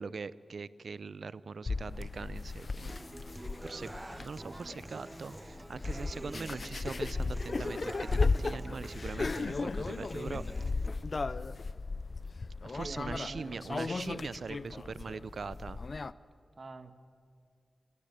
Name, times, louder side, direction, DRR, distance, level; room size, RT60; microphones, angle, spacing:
voice 1, 0.0-3.0 3.6-3.9 4.2-10.4 12.6-15.8, right 4 dB, 65° right, 18 dB, 0.6 m, -41 dB
sound 1, 1.7-16.1, left 3 dB, 55° left, 0.5 m, -36 dB
Human voice / Acoustic guitar, 2.9-10.9, right 1 dB, 25° right, 0.5 m, -47 dB
voice 2, 12.8-13.9 16.6-16.9, right 3 dB, 50° right, 10 dB, 1.6 m, -45 dB
25.5 x 13.5 x 8.7 m, 2.4 s
cardioid pair, 45°, 0 cm